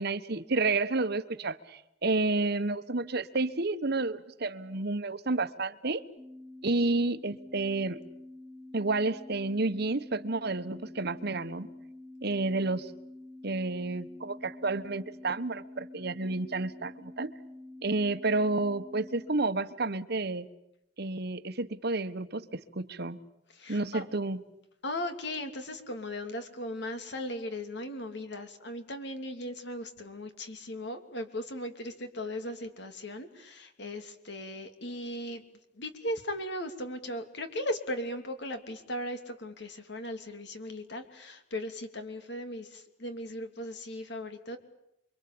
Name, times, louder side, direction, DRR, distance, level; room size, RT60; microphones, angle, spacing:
voice 1, 0.0-6.0 6.6-8.0 8.7-11.7 12.2-12.9 13.4-17.3 17.8-20.5 21.0-23.2 23.7-24.4, right 3 dB, 60° right, 12 dB, 1.3 m, -30 dB
sound 1, 6.2-19.4, left 2 dB, ahead, 2.2 m, -48 dB
voice 2, 23.5-24.1 24.8-35.4 35.8-44.6, left 1 dB, 65° left, 7 dB, 3.1 m, -37 dB
28.5 x 23.5 x 8.7 m, 0.81 s
head